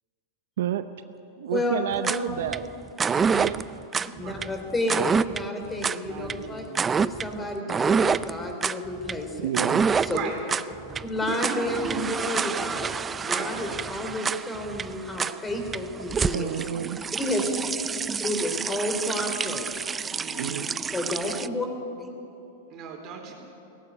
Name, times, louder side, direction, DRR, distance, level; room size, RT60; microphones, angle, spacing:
voice 1, 0.6-0.9 1.4-2.7 3.1-3.7 9.4-9.8 16.3-17.0 20.4-20.7, right 11 dB, 75° right, 11 dB, 0.7 m, -30 dB
voice 2, 1.5-2.4 4.0-6.7 7.0-9.5 10.0-10.2 11.0-12.9 13.2-16.7 17.1-17.6 18.2-19.8 20.9-21.7 22.0-22.1, left 1 dB, 15° left, 3 dB, 3.4 m, -31 dB
sound 1, 1.9-21.5, right 6 dB, 20° right, 0.4 m, -28 dB
voice 3, 6.1-6.8 10.1-10.3 11.3-11.4 12.4-12.5 13.2-13.5 16.9-17.0 20.1-20.8 22.7-23.3, right 7 dB, 40° right, 2 dB, 4.1 m, -38 dB
17.5 x 15.5 x 9.8 m, 2.8 s
hypercardioid pair, 120°, 0 cm